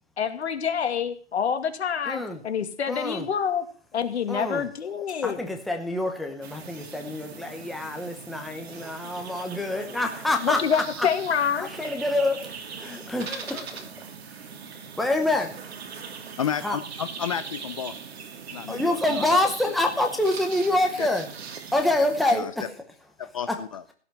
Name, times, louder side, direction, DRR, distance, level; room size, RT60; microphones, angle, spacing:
voice 1, 0.2-3.6 3.9-5.4 10.4-11.7, left 7 dB, 70° left, 8 dB, 2.3 m, -27 dB
voice 2, 2.1-2.4 2.9-3.3 4.3-4.7 5.2-10.8 11.6-12.5 12.8-13.9 14.3-14.4 15.0-15.5 16.6-16.8 18.7-21.2 21.7-22.7 23.5-23.6, left 1 dB, ahead, 3 dB, 0.8 m, -26 dB
sound 1, 6.4-22.3, right 6 dB, 60° right, 2.9 m, -40 dB
voice 3, 16.4-17.9 18.5-19.4 19.7-19.8 21.0-21.1 22.3-22.5 23.3-23.8, left 8 dB, 30° left, 13 dB, 0.6 m, -32 dB
16.5 x 5.9 x 9.0 m, 0.43 s
hypercardioid pair, 160°, 35 cm